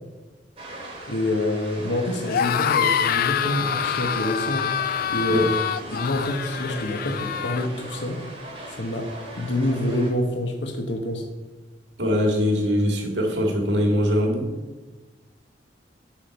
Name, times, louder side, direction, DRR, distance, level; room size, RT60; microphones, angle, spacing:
sound 1, 0.6-10.1, right 1 dB, 35° right, 2.5 m, -39 dB
voice 1, 1.1-4.7 5.1-5.5 5.9-8.2 8.7-11.3, left 1 dB, 80° left, 4 dB, 1.1 m, -26 dB
sound 2, 2.2-7.7, left 8 dB, 55° left, 0.3 m, -25 dB
voice 2, 12.0-14.5, equal, 75° right, 2 dB, 1.9 m, -22 dB
7.4 x 7.2 x 5.1 m, 1.2 s
head